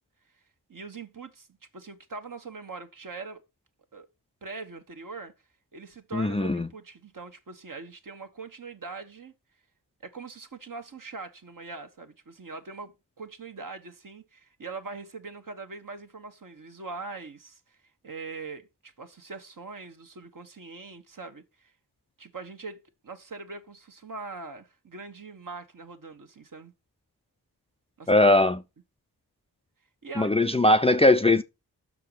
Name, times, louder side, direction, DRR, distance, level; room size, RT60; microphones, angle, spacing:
voice 1, 0.7-1.5 1.7-3.4 3.9-4.1 4.4-5.3 5.7-9.3 10.0-17.8 18.0-21.7 22.2-26.7 28.0-28.2 30.0-30.3, right 4 dB, 50° right, 1.3 m, -42 dB
voice 2, 6.1-6.7 28.1-28.6 30.2-31.4, left 2 dB, 15° left, 0.5 m, -20 dB
6.1 x 4.7 x 5.8 m
cardioid pair, 45°, 41 cm